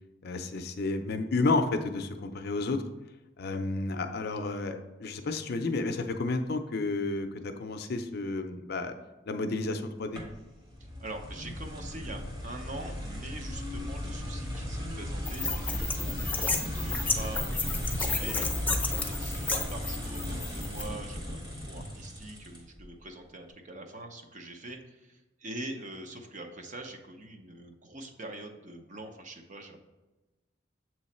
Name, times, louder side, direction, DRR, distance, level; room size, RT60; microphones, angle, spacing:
voice 1, 0.2-2.8 3.4-8.9 9.3-10.2, left 3 dB, 60° left, 7 dB, 0.5 m, -31 dB
sound 1, 10.1-22.8, equal, 25° right, 1.3 m, -36 dB
voice 2, 11.0-29.8, right 1 dB, 40° right, 4 dB, 0.7 m, -44 dB
sound 2, 15.3-20.8, left 4 dB, 10° left, 0.6 m, -32 dB
7.3 x 3.1 x 4.2 m, 1.1 s
head